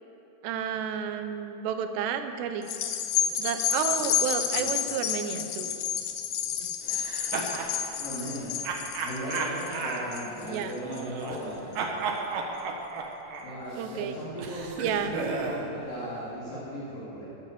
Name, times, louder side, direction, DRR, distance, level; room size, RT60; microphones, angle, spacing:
voice 1, 0.4-2.7 3.4-5.7 10.5-10.7 13.8-14.2 14.8-15.1, right 8 dB, 85° right, 8 dB, 3.0 m, -31 dB
sound 1, 2.6-11.3 11.8-11.9, left 9 dB, 75° left, 2.0 m, -30 dB
sound 2, 6.9-7.7 8.6-11.5 11.7-15.7, right 4 dB, 65° right, 2.4 m, -34 dB
voice 2, 8.0-8.5 9.0-11.9 13.4-17.3, equal, 55° left, -10 dB, 4.8 m, -37 dB
14.5 x 12.0 x 6.9 m, 3.0 s
omnidirectional pair, 4.9 m